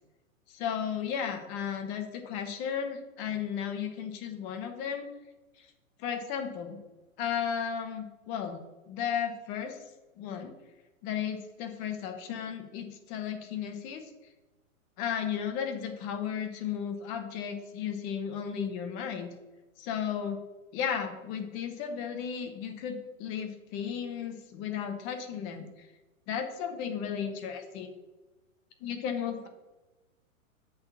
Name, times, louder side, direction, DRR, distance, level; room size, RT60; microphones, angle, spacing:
voice 1, 0.5-5.1 5.6-5.7 6.0-6.8 7.2-8.6 8.9-9.8 10.2-10.5 11.0-14.1 15.0-19.3 19.8-20.4 20.7-25.7 26.3-27.9 28.8-29.5, left 8 dB, 25° left, 6 dB, 0.8 m, -34 dB
7.9 x 4.1 x 6.9 m, 1.1 s
hypercardioid pair, 150°, 42 cm